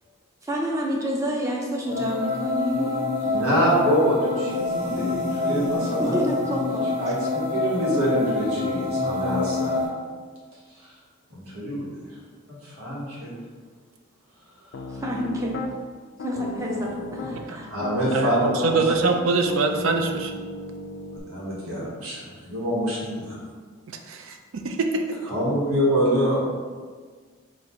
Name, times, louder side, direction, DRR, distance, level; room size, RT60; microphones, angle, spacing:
voice 1, 0.4-3.3 6.0-6.8 15.0-15.7 16.2-17.7, equal, 15° right, -2 dB, 0.6 m, -28 dB
sound 1, 1.8-9.8, left 3 dB, 45° right, 1.3 m, -26 dB
voice 2, 3.2-6.2 7.0-9.8 10.8-10.9 11.3-11.9 12.5-13.3 17.7-19.1 21.1-23.4 25.3-26.4, equal, 85° right, -6 dB, 1.5 m, -25 dB
Piano, 14.7-15.7 16.2-17.4 17.8-21.2, left 2 dB, 55° left, 0.3 m, -35 dB
voice 3, 18.1-20.4 23.9-24.4 24.6-25.0, right 3 dB, 65° right, 4 dB, 0.4 m, -24 dB
4.1 x 2.5 x 4.5 m, 1.5 s
head